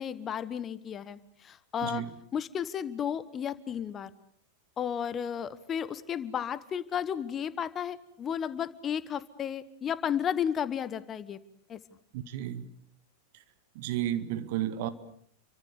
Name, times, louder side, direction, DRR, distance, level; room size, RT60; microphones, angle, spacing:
voice 1, 0.0-2.0 2.3-4.1 4.8-11.4 11.7-11.8, left 8 dB, 25° left, 1.2 m, -33 dB
voice 2, 12.1-12.7 13.8-14.9, right 12 dB, 50° right, 1.9 m, -32 dB
30.0 x 24.5 x 6.7 m
figure-of-eight pair, 90°, 0 cm